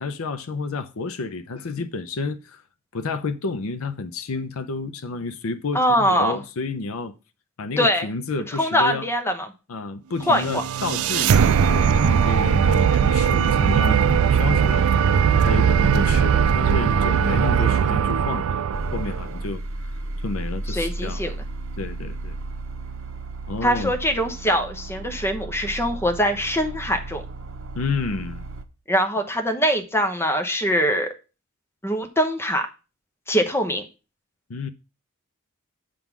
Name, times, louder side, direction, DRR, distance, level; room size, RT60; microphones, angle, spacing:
voice 1, 0.0-2.6 2.9-7.1 7.6-9.1 9.7-14.9 15.4-18.6 18.9-19.9 20.2-21.2 21.8-22.4 23.5-24.0 27.7-28.5 34.5-34.7, left 3 dB, 75° left, 0.6 m, -30 dB
voice 2, 5.7-6.4 7.8-8.1 8.5-9.5 10.3-10.6 20.7-21.3 23.6-27.2 28.9-31.1 31.8-32.7 33.3-33.9, equal, 10° left, 0.9 m, -22 dB
sound 1, 10.3-19.4, right 7 dB, 80° right, 0.4 m, -19 dB
sound 2, 12.9-17.9, right 2 dB, 35° right, 0.8 m, -41 dB
sound 3, 18.7-28.6, right 2 dB, 65° right, 0.8 m, -34 dB
8.3 x 3.7 x 6.0 m
head